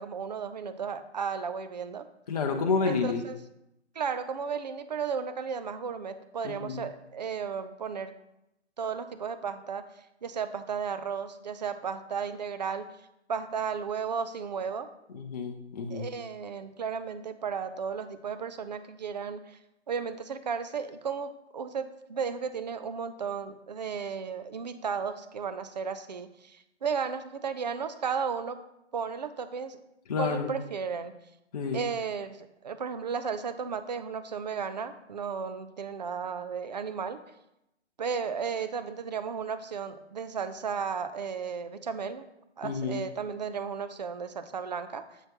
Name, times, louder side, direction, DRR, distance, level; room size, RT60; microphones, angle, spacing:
voice 1, 0.0-2.1 2.8-3.4 4.0-8.2 8.8-9.8 10.2-12.9 13.3-14.9 15.9-19.6 19.9-28.6 28.9-29.8 30.2-31.1 31.7-37.2 38.0-42.3 42.6-45.2, right 6 dB, 40° right, 11 dB, 0.5 m, -34 dB
voice 2, 2.3-3.2 6.4-6.8 15.1-16.1 30.1-30.5 31.5-31.8 42.6-43.0, left 5 dB, 35° left, 2 dB, 0.6 m, -30 dB
7.4 x 7.3 x 2.9 m, 0.86 s
figure-of-eight pair, 135°, 35 cm